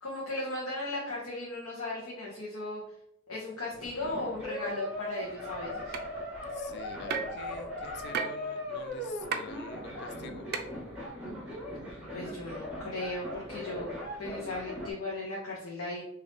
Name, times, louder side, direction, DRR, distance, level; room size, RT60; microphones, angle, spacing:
voice 1, 0.0-2.8 3.3-5.9 12.1-13.9 14.2-16.0, left 2 dB, 85° left, -5 dB, 1.0 m, -36 dB
sound 1, 3.7-14.9, left 1 dB, 5° right, 1.3 m, -39 dB
sound 2, 5.9-6.0 7.1-7.4 8.1-8.3 9.3-9.4 10.5-10.6, right 6 dB, 50° right, 0.4 m, -31 dB
voice 2, 6.5-10.5, left 5 dB, 55° left, 8 dB, 0.3 m, -47 dB
4.0 x 2.7 x 3.4 m, 0.77 s
head